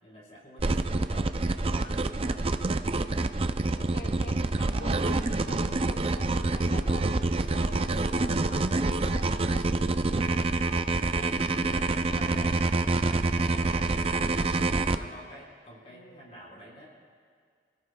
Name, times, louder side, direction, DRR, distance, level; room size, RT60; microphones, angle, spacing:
voice 1, 0.0-2.5 7.6-7.9 12.0-12.6 13.1-16.9, equal, 35° left, -4 dB, 4.8 m, -48 dB
sound 1, 0.6-15.0, right 2 dB, 30° right, 0.4 m, -27 dB
voice 2, 3.7-7.1 7.5-11.3 11.7-12.5 13.4-13.8 15.9-16.2, left 2 dB, 70° left, 0 dB, 1.0 m, -45 dB
29.5 x 17.0 x 2.4 m, 2.1 s
head